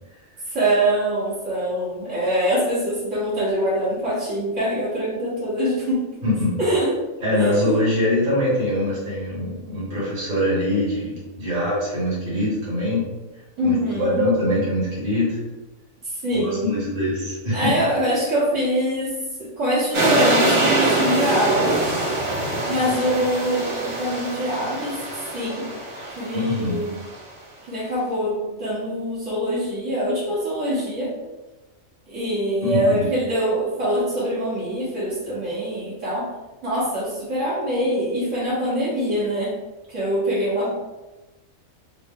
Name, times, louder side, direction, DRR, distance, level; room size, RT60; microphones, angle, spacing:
voice 1, 0.5-6.1 6.6-6.9 7.3-7.8 13.6-14.2 16.0-16.7 17.5-21.9 22.7-25.0 25.3-25.7 26.2-27.0 27.7-31.1 32.1-36.3 36.6-39.6 39.9-40.7, equal, 65° right, -9 dB, 1.7 m, -24 dB
voice 2, 6.2-6.6 7.2-13.1 13.6-15.4 16.3-17.8 26.3-26.8 32.6-33.1, left 1 dB, 40° right, -8 dB, 1.5 m, -23 dB
sound 1, 19.9-27.0, right 2 dB, 85° right, 1.6 m, -23 dB
3.9 x 2.1 x 3.5 m, 1.1 s
omnidirectional pair, 1.4 m